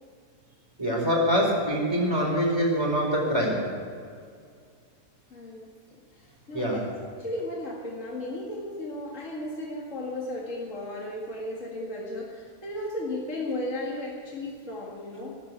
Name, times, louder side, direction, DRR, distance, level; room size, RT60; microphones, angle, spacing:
voice 1, 0.8-3.7 6.5-6.9, equal, 15° right, -3 dB, 4.5 m, -24 dB
voice 2, 5.3-5.7 6.1-6.9 7.2-15.4, left 1 dB, 50° left, -3 dB, 2.4 m, -35 dB
19.0 x 8.2 x 8.2 m, 2.1 s
omnidirectional pair, 1.7 m